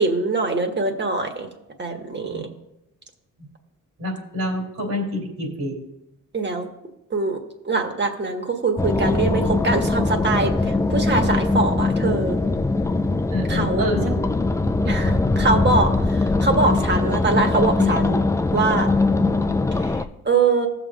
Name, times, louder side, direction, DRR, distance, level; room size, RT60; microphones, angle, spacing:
voice 1, 0.0-1.5 1.8-2.5 6.3-6.7 7.1-7.4 7.6-12.4 13.5-13.9 14.8-18.2 18.5-18.9 19.8-20.7, right 3 dB, 35° right, 4 dB, 1.6 m, -23 dB
voice 2, 4.0-5.8 13.3-14.2 14.8-14.9 15.5-15.6 19.2-19.3, left 1 dB, 80° right, -1 dB, 3.3 m, -27 dB
sound 1, 8.8-20.0, left 3 dB, 10° left, 0.4 m, -21 dB
15.5 x 7.1 x 2.5 m, 0.87 s
cardioid pair, 90°, 33 cm